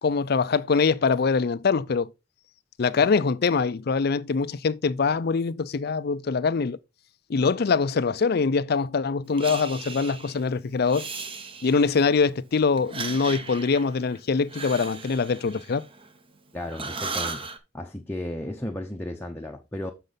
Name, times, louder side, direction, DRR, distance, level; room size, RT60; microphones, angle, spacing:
voice 1, 0.0-2.1 2.8-6.8 7.3-11.1 11.6-15.9, left 5 dB, 55° left, 0.5 m, -23 dB
Breathing, 9.4-10.4 10.8-12.1 12.8-16.4 16.7-17.6, right 4 dB, 30° right, 0.9 m, -37 dB
voice 2, 16.5-17.5 17.7-19.9, left 1 dB, 10° left, 0.7 m, -34 dB
6.6 x 6.5 x 3.9 m
head